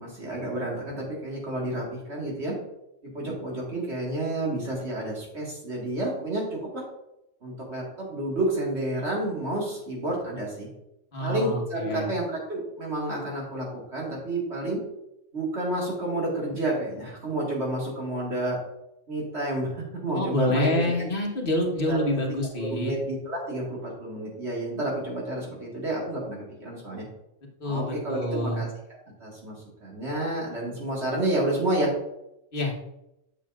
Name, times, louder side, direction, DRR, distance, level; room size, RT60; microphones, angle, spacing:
voice 1, 0.0-2.6 3.1-6.8 7.4-10.7 11.2-14.8 15.3-18.6 19.1-20.9 21.9-22.0 22.6-27.1 27.6-28.7 29.2-31.9, right 1 dB, 60° right, -3 dB, 2.1 m, -30 dB
voice 2, 11.1-12.1 20.1-22.9 27.6-28.7 32.5-32.7, left 1 dB, 45° left, 0 dB, 1.5 m, -27 dB
8.9 x 6.1 x 2.4 m, 0.85 s
omnidirectional pair, 1.3 m